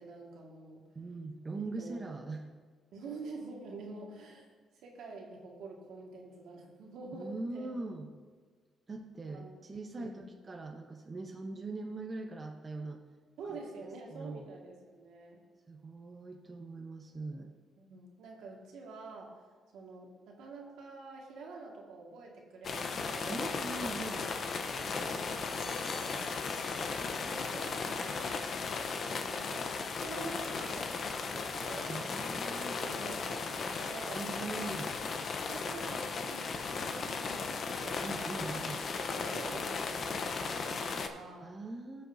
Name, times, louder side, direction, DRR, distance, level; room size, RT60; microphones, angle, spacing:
voice 1, 0.0-0.8 1.8-2.1 2.9-4.5 4.8-7.7 9.3-10.3 13.4-15.4 17.8-19.3 19.7-23.6 24.7-25.9 26.3-28.4 29.3-32.4 32.8-34.3 35.5-38.0 39.0-41.5, right 3 dB, 80° right, -1 dB, 1.8 m, -47 dB
voice 2, 0.9-2.4 7.1-8.1 8.9-13.0 14.1-14.5 15.7-17.5 23.3-24.3 31.9-32.8 34.1-35.0 38.0-38.8 41.4-42.1, right 3 dB, 30° right, 2 dB, 1.0 m, -41 dB
sound 1, 22.6-41.1, left 4 dB, 50° left, 0.8 m, -36 dB
sound 2, 25.4-27.7 28.0-28.6, left 4 dB, 75° left, 2.4 m, -53 dB
18.0 x 6.6 x 2.7 m, 1.5 s
cardioid pair, 90°, 0 cm